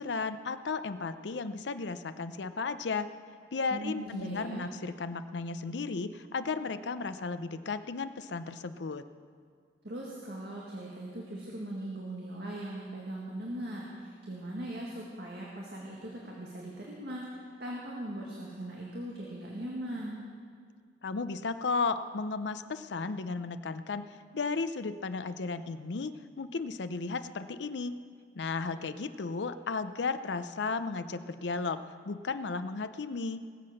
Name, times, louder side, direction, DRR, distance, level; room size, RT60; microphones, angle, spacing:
voice 1, 0.0-3.1 3.5-9.0 21.0-24.1 24.3-27.9 28.3-33.4, left 4 dB, 75° left, 11 dB, 0.6 m, -34 dB
voice 2, 3.7-4.7 9.8-20.2, right 1 dB, 65° right, -3 dB, 1.9 m, -39 dB
20.0 x 7.6 x 6.5 m, 2.1 s
head